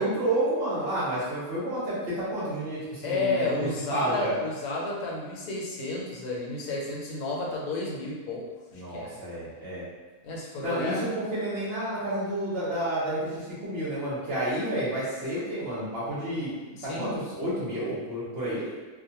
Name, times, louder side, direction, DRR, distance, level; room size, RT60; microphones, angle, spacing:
voice 1, 0.0-4.3 8.7-9.8 10.6-16.5 16.8-18.6, right 1 dB, 50° right, -9 dB, 0.8 m, -30 dB
voice 2, 3.0-9.1 10.2-11.0 16.7-17.1, left 2 dB, 75° left, -3 dB, 1.1 m, -31 dB
2.5 x 2.2 x 2.7 m, 1.3 s
omnidirectional pair, 1.6 m